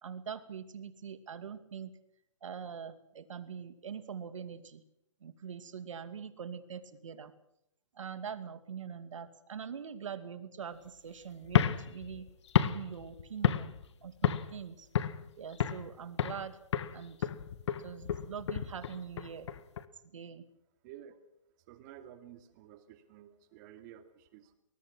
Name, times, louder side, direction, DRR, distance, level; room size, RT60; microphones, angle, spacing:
voice 1, 0.0-1.9 2.4-4.8 5.2-7.3 7.9-12.3 12.6-13.7 14.0-14.9 15.4-16.6 16.9-17.3 17.8-19.5 20.1-20.4, right 7 dB, 75° right, 11 dB, 2.4 m, -43 dB
sound 1, 11.4-13.9 14.2-14.6 14.9-15.9 16.2-16.5 16.7-19.8, left 9 dB, 60° left, 1.7 m, -31 dB
voice 2, 20.8-21.2 21.7-24.5, right 11 dB, 35° right, 8 dB, 2.5 m, -52 dB
24.5 x 20.5 x 6.2 m, 0.75 s
hypercardioid pair, 150°, 17 cm